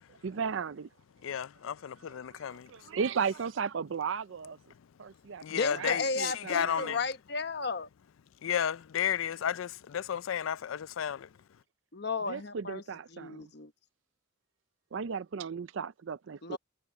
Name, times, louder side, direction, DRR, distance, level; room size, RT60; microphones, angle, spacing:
voice 1, 0.1-0.9 2.0-2.4 2.7-4.6 5.0-5.4 5.7-7.0 12.3-13.4 14.9-16.6, right 6 dB, 75° right, 0.5 m, -35 dB
voice 2, 1.2-2.7 5.4-7.0 8.4-11.3, left 9 dB, 85° left, 0.4 m, -33 dB
voice 3, 5.5-7.9 11.9-12.8 13.1-13.7 16.4-16.6, left 4 dB, 55° left, 1.0 m, -34 dB
head